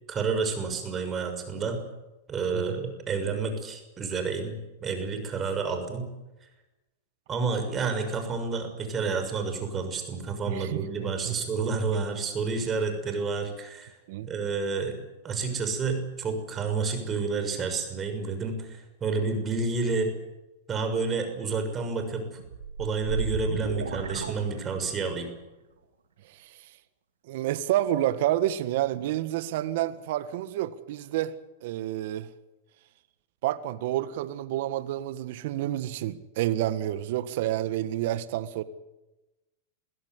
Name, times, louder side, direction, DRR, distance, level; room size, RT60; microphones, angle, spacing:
voice 1, 0.1-1.8 2.3-6.1 7.3-13.9 14.3-15.0 15.2-20.1 20.7-22.4 22.8-25.3, right 4 dB, 25° right, 6.5 m, -30 dB
voice 2, 10.5-11.4 14.1-14.3 26.3-26.6 27.3-31.4 31.6-32.3 33.4-38.6, right 13 dB, 65° right, 1.6 m, -29 dB
sound 1, 22.4-25.1, right 5 dB, 90° right, 3.5 m, -33 dB
23.5 x 16.0 x 9.7 m
hypercardioid pair, 110°, 0 cm